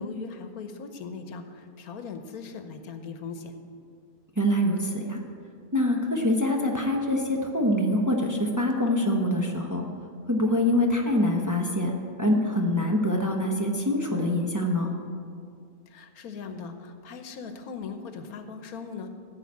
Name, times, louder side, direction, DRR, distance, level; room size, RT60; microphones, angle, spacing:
voice 1, 0.0-3.5 15.9-19.1, left 5 dB, 80° left, 8 dB, 1.4 m, -39 dB
voice 2, 4.4-5.2 5.7-9.9 10.3-11.9 12.2-14.9, left 1 dB, 15° right, 1 dB, 0.8 m, -25 dB
14.5 x 4.9 x 8.5 m, 2.3 s
omnidirectional pair, 1.5 m